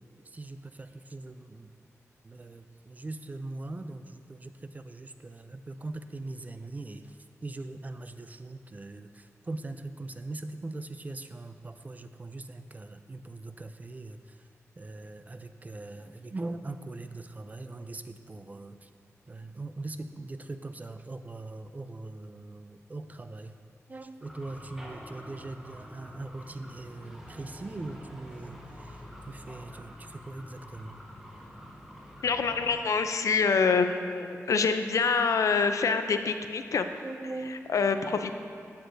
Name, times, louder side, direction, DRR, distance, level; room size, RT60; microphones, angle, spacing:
voice 1, 0.0-1.7 2.2-14.5 14.8-18.9 19.3-23.6 23.9-31.0 37.0-37.7, right 2 dB, 30° right, 9 dB, 0.4 m, -41 dB
sound 1, 24.2-32.7, equal, 5° right, 1.1 m, -47 dB
voice 2, 32.2-36.9 37.5-38.3, left 5 dB, 75° left, 8 dB, 0.5 m, -26 dB
12.5 x 8.1 x 2.6 m, 2.3 s
wide cardioid pair, 95°, 6 cm